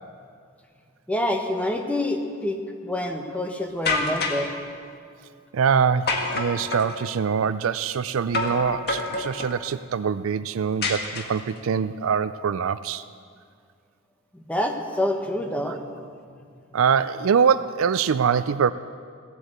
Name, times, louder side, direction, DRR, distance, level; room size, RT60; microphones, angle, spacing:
voice 1, 1.1-4.5 14.3-15.8, left 1 dB, 5° left, 3 dB, 1.3 m, -27 dB
sound 1, 3.9-4.5 6.1-7.0 8.3-8.6 8.9-9.6 10.8-11.6, left 3 dB, 50° left, 1.6 m, -27 dB
voice 2, 5.5-13.0 16.7-18.7, right 6 dB, 70° right, 14 dB, 0.4 m, -23 dB
16.5 x 8.2 x 8.0 m, 2.2 s
head